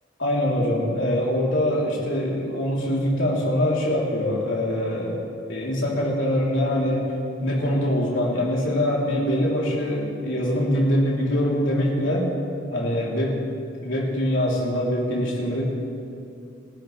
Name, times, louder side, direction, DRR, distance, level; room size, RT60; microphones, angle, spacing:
voice 1, 0.2-7.1 7.4-12.3 12.7-13.4 13.8-15.6, left 1 dB, 75° left, -4 dB, 3.6 m, -23 dB
28.0 x 12.0 x 3.4 m, 2.6 s
head